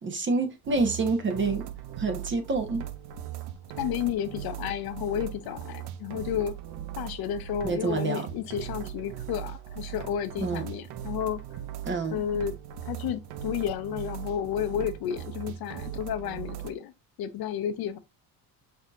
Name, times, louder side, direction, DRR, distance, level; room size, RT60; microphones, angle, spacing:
voice 1, 0.0-1.6 2.0-2.8 7.6-8.3 10.4-10.6 11.9-12.2, right 3 dB, 30° right, 0.9 m, -27 dB
sound 1, 0.6-16.7, right 11 dB, 75° right, 0.7 m, -39 dB
voice 2, 3.7-6.6 6.9-11.4 12.1-12.5 12.8-16.9 17.2-18.0, left 10 dB, 65° left, 0.6 m, -32 dB
5.8 x 2.8 x 2.4 m
cardioid pair, 145°, 41 cm